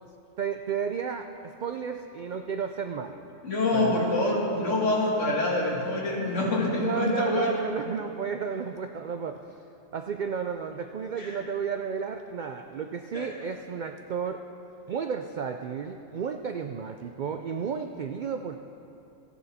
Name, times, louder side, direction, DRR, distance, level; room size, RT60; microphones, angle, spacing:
voice 1, 0.4-3.2 3.7-4.0 6.8-9.4 9.9-14.4 14.9-18.5, right 6 dB, 80° right, 6 dB, 0.4 m, -32 dB
voice 2, 3.4-7.6 11.2-11.4 13.1-13.3, left 2 dB, 65° left, -3 dB, 2.2 m, -26 dB
15.0 x 10.0 x 4.2 m, 2.7 s
omnidirectional pair, 1.4 m